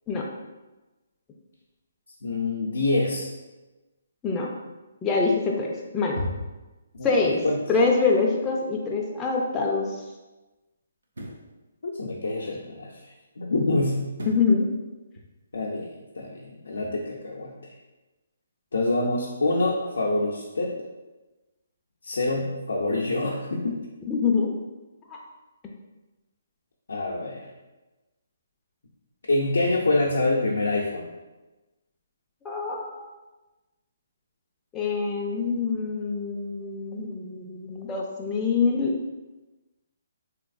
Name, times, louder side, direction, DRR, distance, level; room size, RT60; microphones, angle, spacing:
voice 1, 2.2-3.3 6.9-7.1 7.4-7.6 11.8-12.9 13.4-14.1 15.5-17.5 18.7-20.8 22.0-23.8 26.9-27.5 29.3-31.1, left 2 dB, 80° left, -3 dB, 0.5 m, -26 dB
voice 2, 5.0-6.2 7.0-7.4 7.7-9.9 14.3-14.7 24.1-24.6 25.1-25.2 32.4-33.1 34.7-38.9, left 4 dB, 15° left, -3 dB, 0.4 m, -25 dB
sound 1, 9.2-9.3 11.0-11.5 14.1-14.6 15.1-15.2, right 1 dB, 85° right, 0.6 m, -37 dB
3.2 x 2.9 x 2.4 m, 1.1 s
hypercardioid pair, 150°, 0 cm